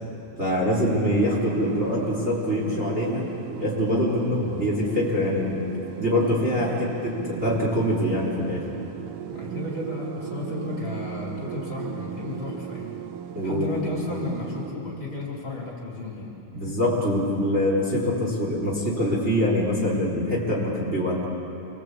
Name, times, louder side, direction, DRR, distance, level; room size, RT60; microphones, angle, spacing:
voice 1, 0.4-3.3 3.6-5.6 6.0-8.7 13.3-13.8 16.5-21.2, left 1 dB, 20° right, -4 dB, 4.0 m, -24 dB
sound 1, 1.0-14.7, right 10 dB, 75° right, 2.4 m, -36 dB
voice 2, 9.3-13.0 13.4-16.3, left 2 dB, 35° left, -3 dB, 4.7 m, -33 dB
28.0 x 23.5 x 8.4 m, 2.9 s
omnidirectional pair, 3.9 m